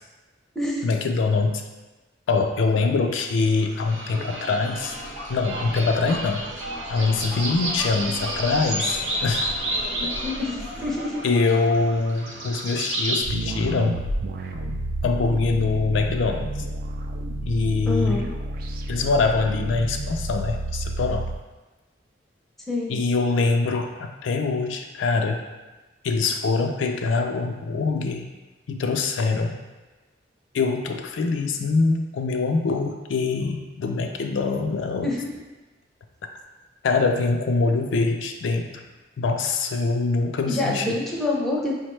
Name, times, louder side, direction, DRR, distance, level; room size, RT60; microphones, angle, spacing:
voice 1, 0.8-1.6 2.3-5.0 5.3-6.4 6.9-9.5 10.0-10.1 11.2-14.1 15.0-16.5 17.5-18.2 18.9-21.3 22.9-25.4 26.0-28.3 28.7-29.6 30.5-35.1 36.8-38.8 39.2-41.0, left 4 dB, 85° left, 4 dB, 0.4 m, -24 dB
sound 1, 3.5-13.2, right 1 dB, 90° right, 0.8 m, -31 dB
voice 2, 10.2-11.2 17.9-18.3 22.7-23.0 35.0-35.3 40.5-41.7, left 2 dB, ahead, -4 dB, 0.5 m, -26 dB
sound 2, 13.2-21.4, right 1 dB, 50° right, 0.3 m, -30 dB
4.8 x 2.1 x 3.1 m, 1.2 s
head